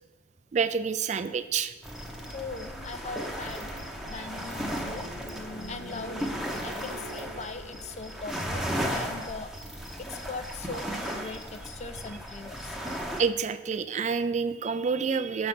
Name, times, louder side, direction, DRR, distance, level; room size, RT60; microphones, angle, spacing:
voice 1, 0.5-1.7 4.1-4.2 13.2-15.5, right 6 dB, 35° right, 11 dB, 0.3 m, -28 dB
sound 1, 1.8-10.1, equal, 75° left, 0.9 m, -47 dB
sound 2, 1.8-13.2, equal, ahead, 0.7 m, -35 dB
voice 2, 2.3-5.1 5.4-12.8, left 4 dB, 35° left, 10 dB, 0.4 m, -41 dB
6.8 x 5.2 x 5.9 m, 1.3 s
head